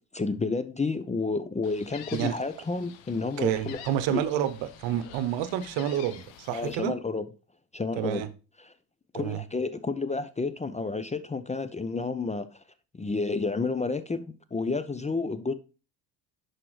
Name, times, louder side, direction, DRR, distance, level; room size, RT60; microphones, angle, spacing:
voice 1, 0.0-3.8 4.1-4.2 6.5-7.2 7.7-8.2 8.6-8.7 9.1-12.5 12.9-15.5, left 3 dB, 15° left, 0.5 m, -30 dB
Gull seagull, 1.6-6.7, left 9 dB, 70° left, 1.1 m, -48 dB
voice 2, 3.4-7.0 8.0-8.3 9.1-9.4, right 10 dB, 65° right, 0.9 m, -29 dB
10.5 x 4.8 x 3.1 m
hypercardioid pair, 65°, 47 cm